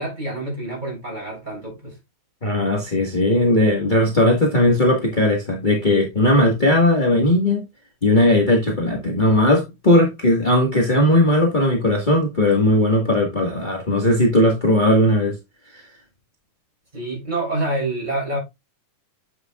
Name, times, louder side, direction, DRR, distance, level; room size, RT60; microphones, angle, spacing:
voice 1, 0.0-2.0 16.9-18.4, right 2 dB, 15° right, 6.3 m, -27 dB
voice 2, 2.4-7.6 8.0-15.3 15.7-15.8, left 1 dB, 30° left, 0.9 m, -18 dB
8.9 x 7.8 x 2.4 m
omnidirectional pair, 3.5 m